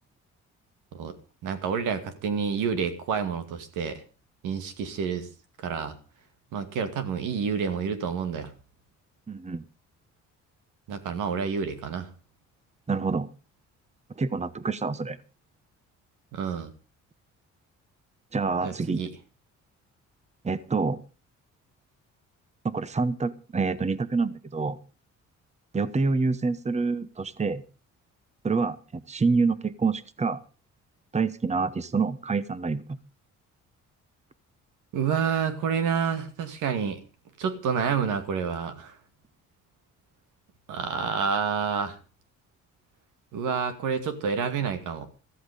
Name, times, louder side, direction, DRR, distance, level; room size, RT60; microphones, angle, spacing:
voice 1, 1.4-4.0 4.4-5.3 5.6-6.0 6.5-8.5 10.9-12.1 16.3-16.7 18.6-19.1 34.9-37.0 37.4-39.0 40.7-42.0 43.3-45.1, right 6 dB, 90° right, 9 dB, 2.3 m, -29 dB
voice 2, 9.3-9.6 12.9-13.3 14.2-15.2 18.3-19.0 20.4-21.0 22.6-24.8 25.7-27.6 28.4-30.4 31.1-33.0, right 4 dB, 20° right, 15 dB, 1.0 m, -27 dB
14.0 x 14.0 x 5.1 m, 0.35 s
cardioid pair, 90°, 30 cm